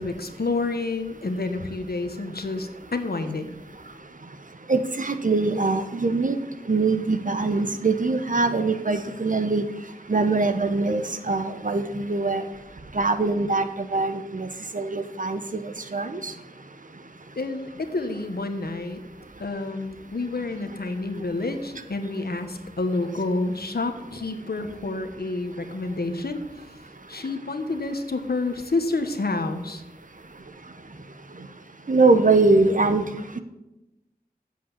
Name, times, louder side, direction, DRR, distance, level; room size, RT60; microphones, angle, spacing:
voice 1, 0.0-3.5 17.4-19.0 19.4-26.4 27.1-29.8, left 3 dB, 80° left, 7 dB, 1.2 m, -29 dB
voice 2, 4.7-6.4 6.7-9.6 10.1-12.4 12.9-13.6 13.9-14.5 14.7-15.4 15.9-16.3 31.9-33.0, right 3 dB, 55° right, 9 dB, 1.0 m, -22 dB
7.9 x 7.5 x 8.6 m, 0.98 s
wide cardioid pair, 55°, 16 cm